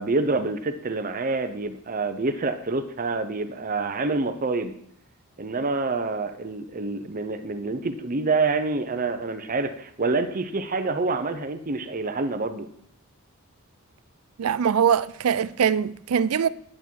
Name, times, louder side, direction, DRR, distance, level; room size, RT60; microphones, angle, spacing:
voice 1, 0.0-4.7 5.4-12.7, right 3 dB, 40° right, 0.7 m, -27 dB
voice 2, 14.4-16.5, right 7 dB, 90° right, 0.4 m, -22 dB
10.5 x 8.7 x 4.6 m
head